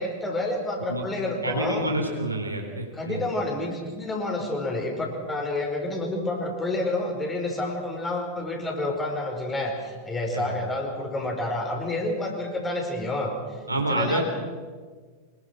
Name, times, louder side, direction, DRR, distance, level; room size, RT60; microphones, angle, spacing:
voice 1, 0.0-1.8 2.9-13.6 13.9-14.2, left 2 dB, 15° left, 1 dB, 5.3 m, -29 dB
voice 2, 1.4-3.2 10.3-10.5 13.7-14.2, right 1 dB, 80° right, 3 dB, 3.7 m, -28 dB
25.5 x 21.5 x 6.3 m, 1.5 s
figure-of-eight pair, 90°, 0 cm